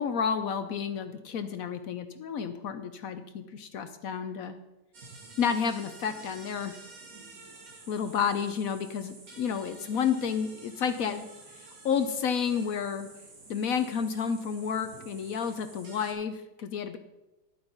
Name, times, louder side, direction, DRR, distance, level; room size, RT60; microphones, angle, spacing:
voice 1, 0.0-4.6 5.4-6.7 7.9-11.3 11.8-13.1 13.5-17.0, left 7 dB, 65° left, 9 dB, 0.9 m, -30 dB
sound 1, 4.9-16.1, right 3 dB, 50° right, 2.1 m, -50 dB
11.0 x 7.9 x 5.3 m, 1.0 s
omnidirectional pair, 1.9 m